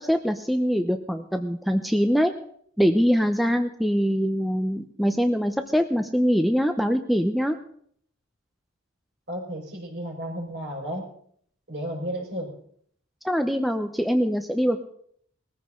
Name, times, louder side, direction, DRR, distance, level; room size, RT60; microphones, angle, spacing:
voice 1, 0.0-2.3 2.8-7.6 13.2-14.9, equal, ahead, 6 dB, 0.7 m, -23 dB
voice 2, 9.3-11.1 11.7-12.5, equal, 55° right, 0 dB, 5.2 m, -33 dB
20.0 x 15.0 x 3.8 m, 0.63 s
head